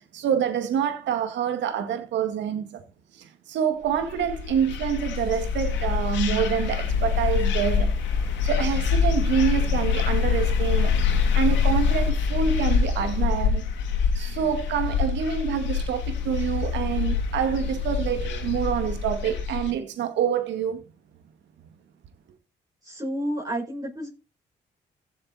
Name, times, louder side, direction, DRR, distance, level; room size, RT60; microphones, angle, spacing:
voice 1, 0.1-2.8 3.2-8.0 8.4-11.0 11.3-13.7 14.1-20.8, right 8 dB, 80° right, 2.1 m, -27 dB
sound 1, 4.0-19.7, left 6 dB, 85° left, 2.7 m, -25 dB
voice 2, 22.8-24.1, right 1 dB, 20° right, 6.0 m, -30 dB
15.5 x 7.4 x 4.2 m
supercardioid pair, 55°, 19 cm